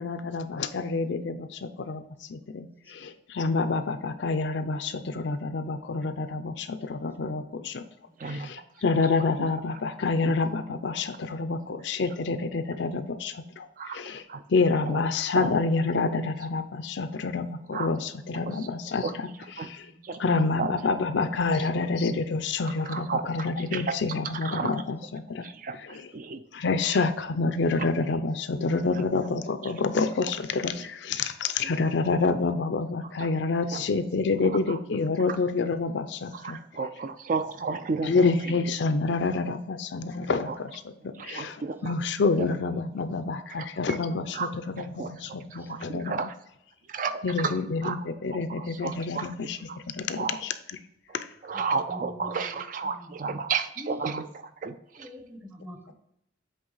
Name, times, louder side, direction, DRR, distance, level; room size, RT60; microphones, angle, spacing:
voice 1, 0.0-7.8 8.2-14.2 14.5-19.3 19.6-19.9 20.2-25.5 25.8-26.1 26.5-36.6 38.0-46.3 47.2-50.8 51.1-51.3, left 4 dB, 65° left, 10 dB, 0.5 m, -28 dB
voice 2, 2.8-3.2 6.3-6.6 8.1-8.2 8.4-8.7 19.8-20.2 41.3-41.4 45.6-45.7 47.6-47.7 51.5-53.5 53.8-54.1 55.0-55.9, left 1 dB, 10° right, 4 dB, 0.7 m, -46 dB
voice 3, 8.2-8.6 10.2-10.3 13.8-14.0 14.3-14.4 14.8-15.0 15.3-15.5 17.7-17.9 18.4-18.5 19.0-19.1 19.6-19.7 20.0-20.7 22.9-23.2 23.7-23.9 24.4-24.7 25.4-26.4 33.7-33.8 34.4-34.8 36.4-38.3 40.5-40.6 41.2-41.9 42.4-42.5 43.5-43.7 44.3-44.5 45.0-45.1 45.5-46.3 46.9-47.5 47.8-48.0 48.6-49.3 49.7-49.8 50.2-50.4 51.4-54.2 54.6-55.1, right 5 dB, 45° right, 10 dB, 0.4 m, -32 dB
7.9 x 3.3 x 3.9 m, 0.78 s
head